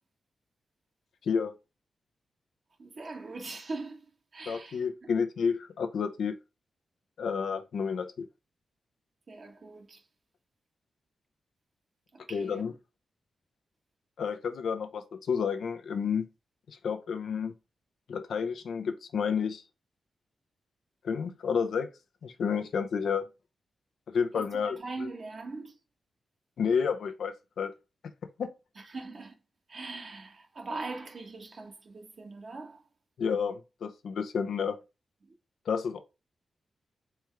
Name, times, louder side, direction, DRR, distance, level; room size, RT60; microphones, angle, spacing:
voice 1, 2.8-5.1 9.3-10.0 12.1-12.7 24.3-25.8 28.7-29.4 29.7-32.9 35.2-35.3, right 3 dB, 55° right, 1.3 m, -41 dB
voice 2, 4.5-6.3 7.2-8.3 12.3-12.7 14.2-16.2 16.8-17.5 18.1-19.6 21.0-21.9 22.2-23.3 24.1-24.8 26.6-27.7 28.4-28.5 33.2-34.8 35.7-36.0, left 6 dB, 80° left, 0.6 m, -30 dB
4.4 x 3.6 x 3.4 m
cardioid pair, 55°, 0 cm